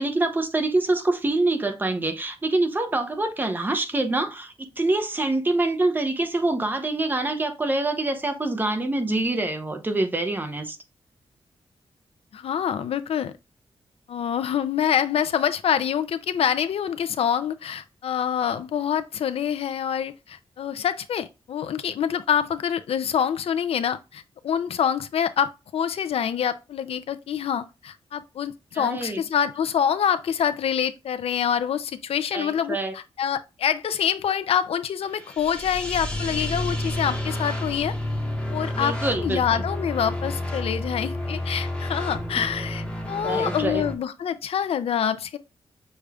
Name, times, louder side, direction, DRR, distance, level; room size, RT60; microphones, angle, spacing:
voice 1, 0.0-10.8 28.7-29.2 32.3-32.9 38.7-39.6 42.4-42.5 43.2-43.8, right 2 dB, 20° right, 0.7 m, -25 dB
voice 2, 12.3-13.4 14.1-37.9 38.5-45.4, left 8 dB, 85° left, 0.4 m, -26 dB
sound 1, 35.0-43.9, left 1 dB, 10° left, 0.9 m, -30 dB
6.4 x 2.4 x 3.3 m
wide cardioid pair, 160°, 10 cm